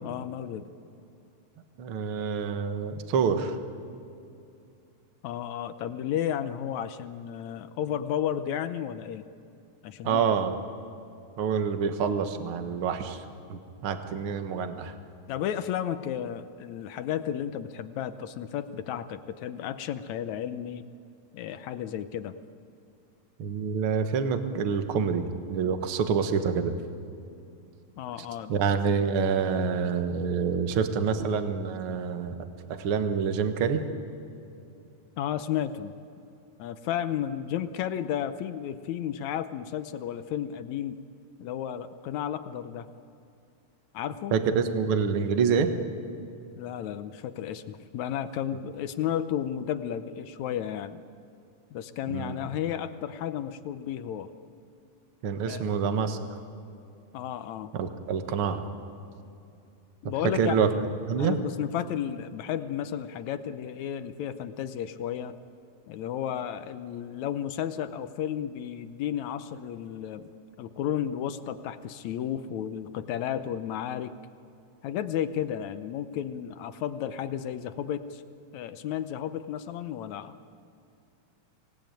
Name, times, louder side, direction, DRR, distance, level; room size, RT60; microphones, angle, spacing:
voice 1, 0.0-0.7 5.2-9.2 9.8-10.2 15.3-20.8 21.3-22.3 28.0-28.5 35.2-35.9 36.6-41.0 41.4-42.9 43.9-44.3 46.5-51.0 51.7-54.3 55.5-55.6 57.1-57.7 60.0-60.6 61.2-65.3 65.9-70.3 70.6-74.1 74.8-78.2 78.5-80.4, left 10 dB, 75° left, 11 dB, 1.8 m, -33 dB
voice 2, 1.8-3.6 10.0-10.6 11.4-13.2 13.5-14.9 23.4-26.7 28.5-32.3 32.7-33.8 44.3-45.7 52.1-52.4 55.2-56.2 57.7-58.6 60.3-60.7 61.1-61.4, right 6 dB, 55° right, 7 dB, 1.8 m, -27 dB
25.5 x 18.5 x 9.1 m, 2.6 s
omnidirectional pair, 4.0 m